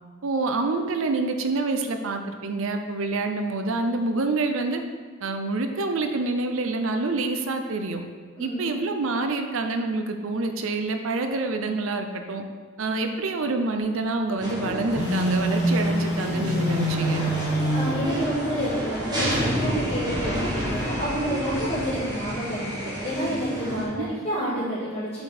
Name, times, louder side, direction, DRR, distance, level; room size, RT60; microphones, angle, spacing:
voice 1, 0.2-4.8 5.2-8.0 8.4-12.4 12.8-17.3 23.8-24.1, right 3 dB, 60° right, 6 dB, 0.5 m, -27 dB
voice 2, 8.4-8.7 12.9-13.2 17.7-25.2, equal, 30° left, -9 dB, 1.6 m, -29 dB
sound 1, 14.4-23.8, equal, 20° right, 1.2 m, -30 dB
Telephone, 14.9-18.1, equal, 50° left, 0.8 m, -25 dB
7.7 x 4.1 x 4.2 m, 1.5 s
head